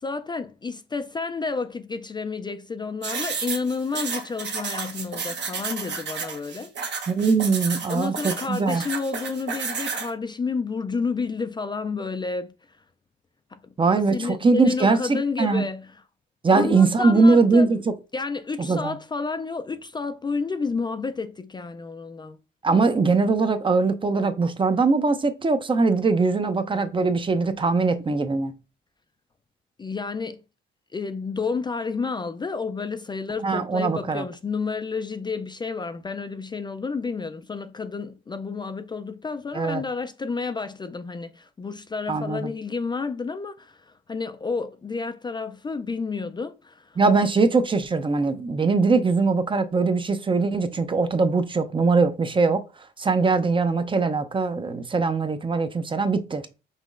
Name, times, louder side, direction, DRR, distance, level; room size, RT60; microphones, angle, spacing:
voice 1, 0.0-6.7 7.9-12.8 13.5-16.0 16.5-17.7 18.1-22.4 29.8-30.4 30.9-47.0, left 4 dB, 20° left, 0.3 m, -30 dB
sound 1, 3.0-10.1, right 5 dB, 65° right, 1.1 m, -31 dB
voice 2, 7.1-8.8 13.8-15.7 16.4-17.8 18.7-19.0 22.6-28.5 33.4-34.2 39.5-39.8 42.1-42.5 47.0-52.6 53.0-56.5, right 4 dB, 25° right, 0.5 m, -21 dB
5.5 x 3.0 x 2.5 m
cardioid pair, 90°, 20 cm